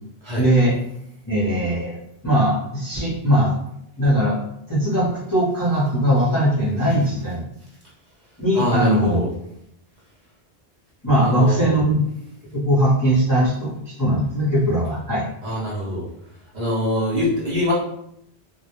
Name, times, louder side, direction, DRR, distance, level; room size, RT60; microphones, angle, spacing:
voice 1, 0.4-0.7 1.3-2.0 2.2-3.6 4.0-4.4 4.7-7.5 8.4-9.2 11.0-12.0 12.5-15.2, equal, 25° left, -9 dB, 0.5 m, -20 dB
voice 2, 8.5-9.3 11.2-11.7 15.4-16.1 16.5-17.7, left 1 dB, 50° right, -6 dB, 0.7 m, -24 dB
2.2 x 2.1 x 2.9 m, 0.76 s
omnidirectional pair, 1.1 m